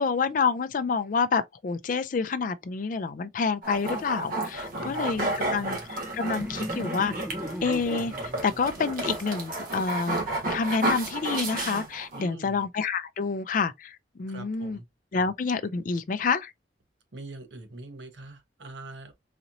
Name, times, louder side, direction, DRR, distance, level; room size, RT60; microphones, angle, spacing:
voice 1, 0.0-7.1 7.6-10.2 10.5-14.8 15.1-16.5, left 5 dB, 45° left, 0.4 m, -28 dB
sound 1, 3.6-12.2, right 1 dB, 50° right, 1.3 m, -32 dB
voice 2, 4.7-5.9 6.5-6.7 12.1-12.6 14.3-14.9 17.1-19.1, right 2 dB, 75° right, 1.0 m, -43 dB
Laughter, 5.4-10.4, equal, 10° right, 0.6 m, -40 dB
4.1 x 2.9 x 2.6 m
head